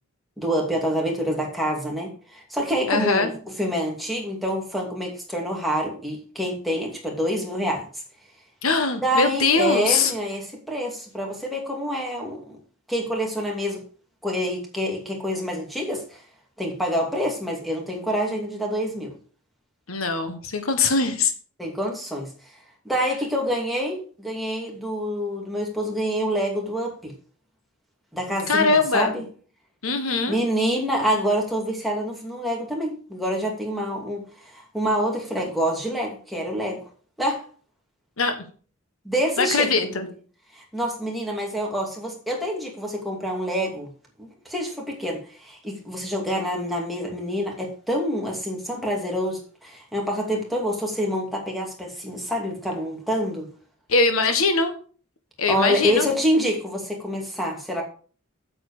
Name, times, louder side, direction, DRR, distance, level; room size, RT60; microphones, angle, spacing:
voice 1, 0.4-7.9 9.0-12.6 12.9-13.8 14.2-16.2 16.6-19.1 21.6-22.3 22.8-27.1 28.1-29.2 30.3-34.2 34.5-36.8 37.2-37.4 39.0-40.0 40.5-43.9 44.2-53.5 55.5-57.8, equal, ahead, -1 dB, 2.6 m, -27 dB
voice 2, 2.9-3.3 8.6-10.1 19.9-21.3 28.5-29.2 29.8-30.4 38.2-38.4 39.4-40.1 53.9-54.7 55.4-56.1, left 4 dB, 85° left, 7 dB, 1.4 m, -22 dB
8.3 x 7.8 x 4.9 m, 0.41 s
head